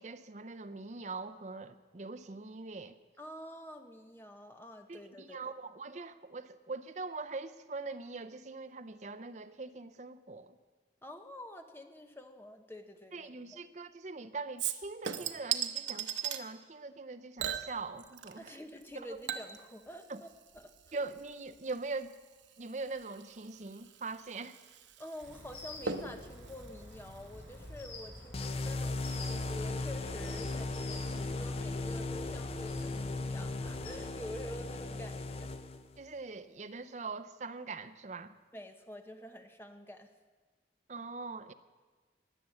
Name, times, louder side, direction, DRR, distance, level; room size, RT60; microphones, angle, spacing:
voice 1, 0.0-2.9 4.9-10.6 13.1-18.6 19.0-19.2 20.1-20.2 20.9-22.1 22.6-24.6 36.0-38.3 40.9-41.5, right 3 dB, 40° right, 10 dB, 0.6 m, -42 dB
voice 2, 3.2-5.4 11.0-13.6 18.4-20.3 20.5-21.0 25.0-35.5 38.5-40.1, left 1 dB, 10° left, 6 dB, 0.9 m, -48 dB
Chink clink / Liquid, 14.6-16.4 17.4-18.5 18.8-27.8 28.2-28.3, right 8 dB, 80° right, 0.9 m, -40 dB
sound 1, 25.2-33.9, left 1 dB, 75° left, 4.3 m, -49 dB
sound 2, 28.3-36.0, left 2 dB, 35° left, 0.5 m, -37 dB
19.5 x 6.9 x 7.9 m, 1.4 s
head